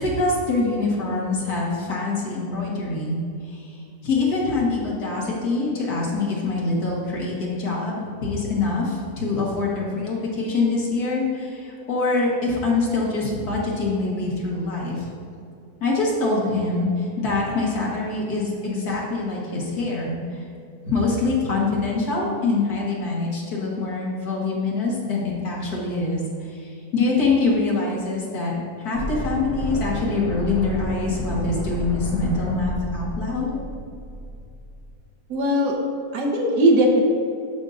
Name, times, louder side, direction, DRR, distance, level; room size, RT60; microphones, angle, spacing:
voice 1, 0.0-3.2 3.5-15.1 15.8-20.5 20.8-28.5 28.8-33.6, left 3 dB, 70° left, -4 dB, 2.0 m, -24 dB
sound 1, 28.9-34.9, equal, 50° left, 1.5 m, -31 dB
voice 2, 35.3-35.8 36.1-37.0, equal, 80° right, 0 dB, 1.6 m, -19 dB
12.0 x 5.3 x 2.5 m, 2.5 s
omnidirectional pair, 1.7 m